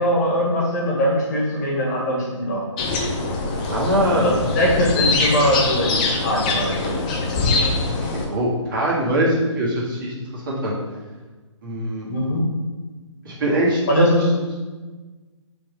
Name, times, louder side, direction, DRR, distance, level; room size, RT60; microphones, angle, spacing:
voice 1, 0.0-2.7 4.1-6.9 12.1-12.5 13.9-14.2, equal, 30° left, -2 dB, 1.5 m, -21 dB
sound 1, 2.8-8.3, left 3 dB, 15° left, 0.4 m, -23 dB
voice 2, 3.7-4.3 4.6-4.7 8.0-10.8 11.6-12.1 13.2-14.1, right 1 dB, 40° right, -5 dB, 1.8 m, -22 dB
5.0 x 3.7 x 5.1 m, 1.3 s
hypercardioid pair, 155°, 16 cm